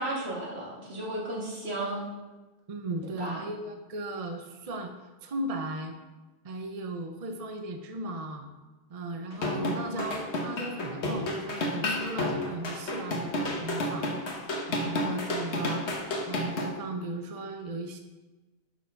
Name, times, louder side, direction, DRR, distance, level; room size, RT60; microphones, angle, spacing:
voice 1, 0.0-2.1 3.2-3.4 9.8-10.0, right 1 dB, 70° right, -4 dB, 2.3 m, -34 dB
voice 2, 2.7-4.9 5.2-5.9 6.4-8.5 8.9-14.1 14.7-15.9 16.3-18.0, right 2 dB, 40° right, 5 dB, 0.6 m, -36 dB
sound 1, 9.3-16.7, left 1 dB, 80° left, 1.4 m, -31 dB
6.7 x 6.1 x 5.7 m, 1.2 s
omnidirectional pair, 1.1 m